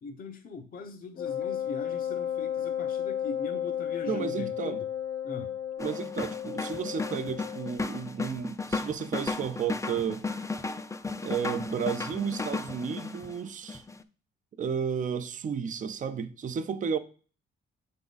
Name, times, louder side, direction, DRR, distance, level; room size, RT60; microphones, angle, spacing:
voice 1, 0.0-4.9 5.2-5.5, left 4 dB, 45° left, 0.8 m, -41 dB
Wind instrument woodwind instrument, 1.2-7.8, left 10 dB, 85° left, 0.7 m, -33 dB
voice 2, 4.1-4.8 5.8-10.2 11.2-13.8 14.6-17.0, right 7 dB, 40° right, 0.6 m, -32 dB
sound 1, 5.8-13.4 13.7-14.0, left 3 dB, 15° left, 0.5 m, -34 dB
6.9 x 3.7 x 3.9 m
cardioid pair, 90°, 20 cm